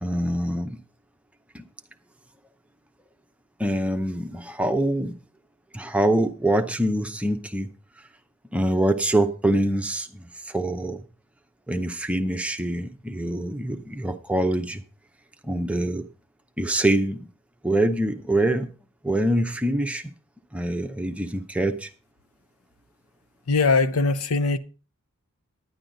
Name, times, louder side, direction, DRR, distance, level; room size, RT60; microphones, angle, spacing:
voice 1, 0.0-0.8 1.5-1.6 3.6-5.2 5.7-7.7 8.5-11.0 11.7-14.8 15.4-16.1 16.6-17.3 17.6-18.7 19.0-20.1 20.5-21.9, right 1 dB, 5° right, 0.7 m, -25 dB
voice 2, 23.5-24.6, left 3 dB, 80° left, 0.7 m, -21 dB
10.5 x 10.0 x 3.8 m
head